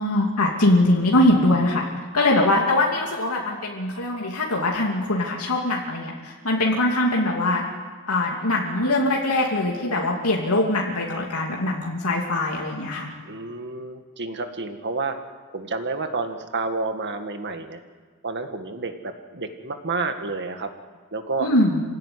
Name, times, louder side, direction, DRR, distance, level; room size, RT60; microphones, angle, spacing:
voice 1, 0.0-1.8 2.1-7.6 8.1-13.1 21.4-21.8, left 1 dB, 85° left, -2 dB, 2.8 m, -22 dB
voice 2, 13.3-15.2 15.5-17.8 18.2-20.7 21.1-21.5, right 3 dB, 55° right, 6 dB, 1.9 m, -29 dB
26.5 x 17.0 x 9.9 m, 1.5 s
head